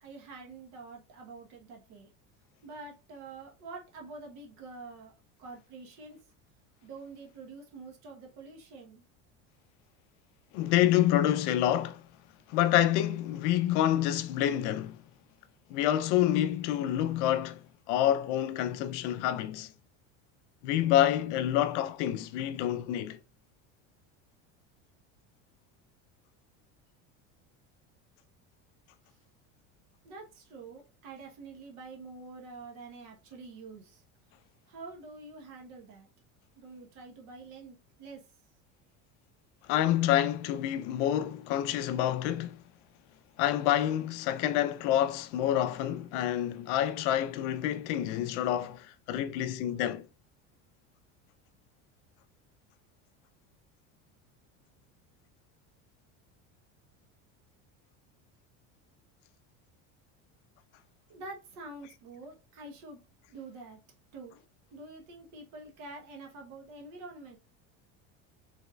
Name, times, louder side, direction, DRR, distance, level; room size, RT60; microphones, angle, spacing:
voice 1, 0.0-2.1 2.6-5.1 5.4-6.2 6.8-9.0 30.0-34.0 34.7-36.1 36.6-38.2 61.1-63.0 63.3-63.8 64.1-64.4 64.7-67.4, right 3 dB, 50° right, 1.2 m, -47 dB
voice 2, 10.5-12.0 12.5-15.0 15.7-17.6 17.9-19.7 20.6-23.2 39.7-42.6 43.4-50.0, left 12 dB, 85° left, 0.6 m, -27 dB
5.3 x 3.5 x 2.3 m
cardioid pair, 170°, 35 cm